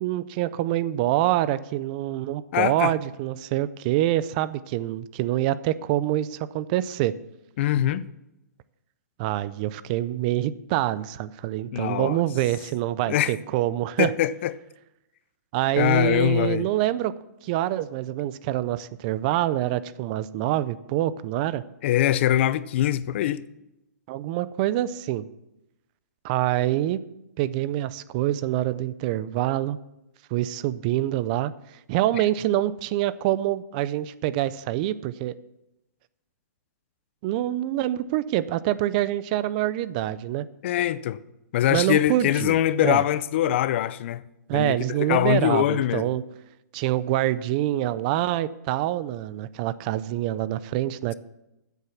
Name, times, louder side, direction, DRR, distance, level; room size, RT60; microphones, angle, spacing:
voice 1, 0.0-7.1 9.2-14.1 15.5-17.1 17.4-21.6 24.1-25.2 26.2-27.0 27.4-29.8 30.3-31.5 31.9-35.4 37.2-40.5 41.7-43.0 44.5-46.2 46.7-51.1, right 14 dB, 25° right, 0.4 m, -26 dB
voice 2, 2.5-2.9 7.6-8.1 11.7-12.2 13.1-13.3 14.0-14.5 15.8-16.7 21.8-23.4 40.6-41.2 41.5-44.2 44.5-46.1, left 12 dB, 40° left, 0.5 m, -23 dB
10.5 x 8.2 x 7.0 m
hypercardioid pair, 160°, 10 cm